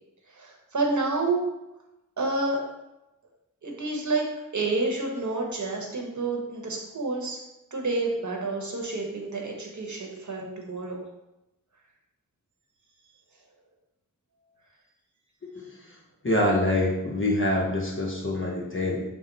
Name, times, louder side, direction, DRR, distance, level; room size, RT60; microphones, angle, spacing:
voice 1, 0.3-1.5 2.2-2.6 3.6-4.2 4.5-7.4 7.7-11.0, right 3 dB, 60° right, 0 dB, 1.0 m, -29 dB
voice 2, 16.2-19.0, left 1 dB, 35° left, -2 dB, 0.8 m, -25 dB
5.9 x 2.1 x 3.9 m, 0.94 s
wide cardioid pair, 80°, 33 cm